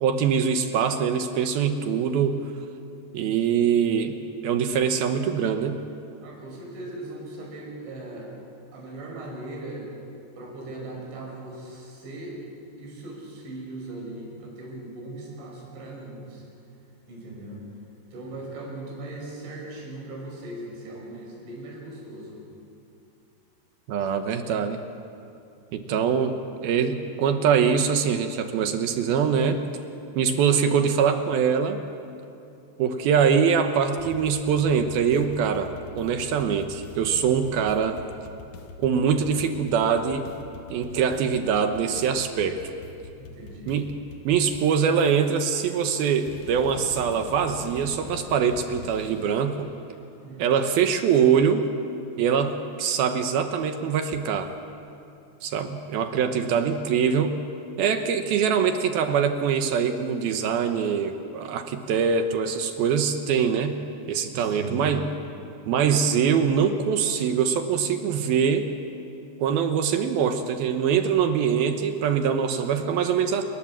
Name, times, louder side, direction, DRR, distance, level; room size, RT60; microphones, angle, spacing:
voice 1, 0.0-2.4 3.1-4.2 4.4-5.8 23.9-24.8 25.7-29.6 30.2-31.8 32.8-38.0 38.8-40.3 40.7-42.6 43.7-43.9 44.2-49.7 50.4-51.7 52.2-54.5 55.4-57.4 57.8-63.8 64.0-65.1 65.7-68.7 69.4-73.4, right 7 dB, 70° right, 7 dB, 2.6 m, -23 dB
voice 2, 3.5-3.9 6.2-8.3 8.7-9.9 10.4-12.4 12.8-16.4 17.1-17.6 18.1-22.4 25.7-26.1 30.2-30.5 37.2-37.4 43.2-43.7 50.2-50.5 56.0-56.4 64.3-64.9, right 2 dB, 85° right, -2 dB, 7.9 m, -39 dB
sound 1, 34.0-49.6, left 4 dB, 65° left, 2.0 m, -44 dB
28.5 x 19.5 x 7.5 m, 2.7 s
omnidirectional pair, 5.2 m